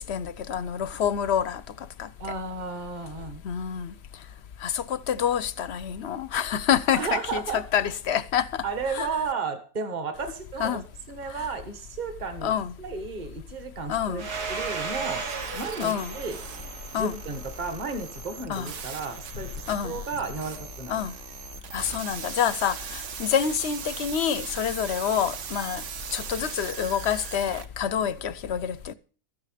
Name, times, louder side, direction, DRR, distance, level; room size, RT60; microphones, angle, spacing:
voice 1, 0.0-2.1 3.4-3.9 4.6-8.6 8.9-9.1 10.6-10.8 11.3-11.5 12.4-12.7 13.9-14.3 15.8-16.2 16.9-17.2 18.5-18.7 19.7-20.0 20.9-21.1 21.7-25.8 26.1-28.9, left 8 dB, 55° left, 0.8 m, -27 dB
voice 2, 2.2-3.4 7.0-7.6 8.6-10.8 11.1-14.2 14.5-15.3 15.5-16.4 17.0-21.0, right 4 dB, 30° right, 1.5 m, -33 dB
Domestic sounds home sounds, 14.2-18.6, right 5 dB, 80° right, 2.1 m, -36 dB
sound 1, 15.3-27.7, right 7 dB, 55° right, 1.1 m, -39 dB
13.5 x 9.7 x 5.0 m
omnidirectional pair, 1.7 m